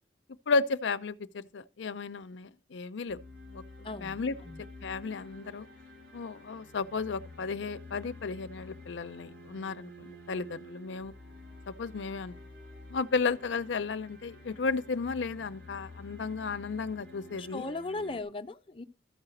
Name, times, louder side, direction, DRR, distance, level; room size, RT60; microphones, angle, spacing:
voice 1, 0.5-3.2 3.5-3.6 4.0-4.3 4.8-5.7 6.1-11.1 11.7-12.4 12.9-17.6, left 4 dB, 85° left, 0.5 m, -33 dB
sound 1, 3.1-18.2, left 2 dB, 80° right, 5.0 m, -50 dB
voice 2, 3.8-4.2 4.4-4.6 17.4-18.8, left 2 dB, 30° left, 0.5 m, -37 dB
13.0 x 4.9 x 7.7 m
head